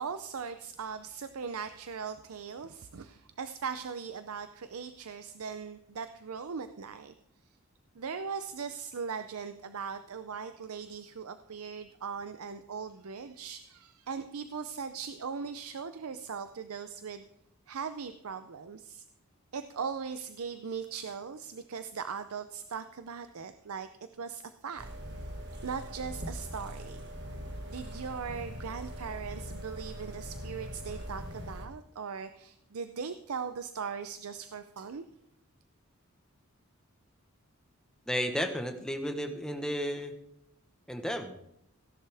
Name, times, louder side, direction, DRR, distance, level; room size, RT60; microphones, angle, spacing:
voice 1, 0.0-7.1 8.0-17.2 17.7-19.0 19.5-23.9 24.2-24.9 25.6-27.0 27.7-35.0, right 6 dB, 80° right, 10 dB, 0.6 m, -39 dB
sound 1, 24.8-31.7, equal, 50° right, 1.9 m, -41 dB
voice 2, 38.1-40.1 40.9-41.4, equal, 5° left, 5 dB, 1.1 m, -33 dB
16.5 x 11.0 x 3.5 m, 0.76 s
head